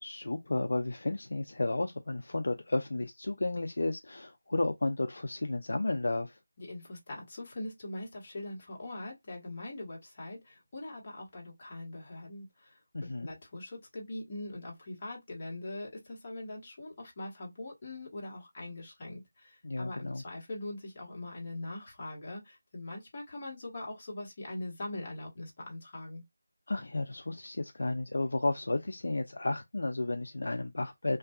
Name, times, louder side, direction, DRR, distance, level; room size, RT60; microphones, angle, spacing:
voice 1, 0.0-6.4 12.9-13.3 19.6-20.2 26.7-31.2, left 2 dB, 65° left, 0.3 m, -32 dB
voice 2, 6.6-26.2, left 2 dB, 35° left, 1.1 m, -42 dB
2.6 x 2.2 x 2.3 m
figure-of-eight pair, 165°, 0 cm